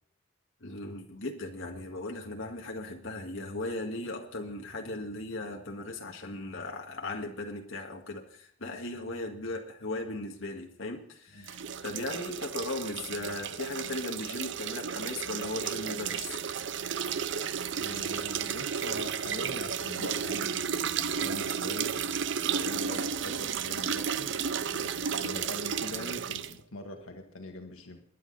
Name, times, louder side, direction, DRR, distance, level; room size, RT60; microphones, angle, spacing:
voice 1, 0.6-16.8, left 2 dB, 70° left, 1 dB, 1.8 m, -37 dB
sound 1, 11.4-26.6, right 7 dB, 60° right, 0.6 m, -33 dB
voice 2, 17.7-22.0 22.5-24.3 24.7-28.0, left 2 dB, 85° left, 3 dB, 1.8 m, -42 dB
21.5 x 9.7 x 4.1 m, 0.63 s
head